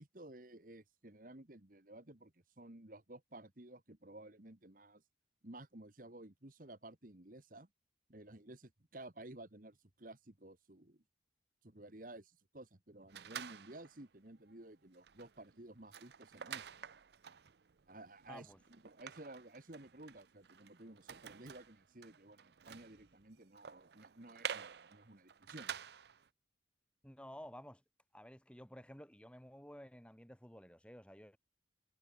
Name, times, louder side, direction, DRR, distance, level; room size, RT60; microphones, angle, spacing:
voice 1, 0.0-5.0 5.4-7.7 8.1-11.0 11.6-16.8 17.9-18.5 18.8-25.8, right 1 dB, 45° right, 1.7 m, -54 dB
sound 1, 13.1-14.0 14.5-14.6 14.9-26.3, right 8 dB, 60° right, 0.6 m, -49 dB
voice 2, 18.3-18.6 27.0-27.8 28.1-31.4, equal, 5° left, 2.5 m, -53 dB
head